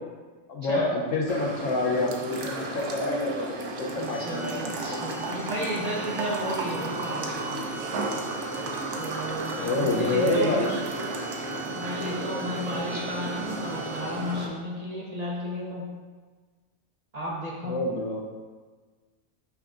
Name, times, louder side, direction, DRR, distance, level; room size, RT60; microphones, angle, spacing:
voice 1, 0.5-5.0 9.6-10.8 17.6-18.3, left 2 dB, 85° left, 0 dB, 1.1 m, -27 dB
sound 1, 1.3-14.5, right 2 dB, 70° right, 0.9 m, -33 dB
voice 2, 3.9-7.6 9.0-10.7 11.7-15.9 17.1-17.7, equal, 40° right, -4 dB, 0.6 m, -33 dB
Organ, 4.0-14.7, right 5 dB, 40° left, 0.4 m, -43 dB
5.9 x 3.4 x 2.5 m, 1.4 s
omnidirectional pair, 1.3 m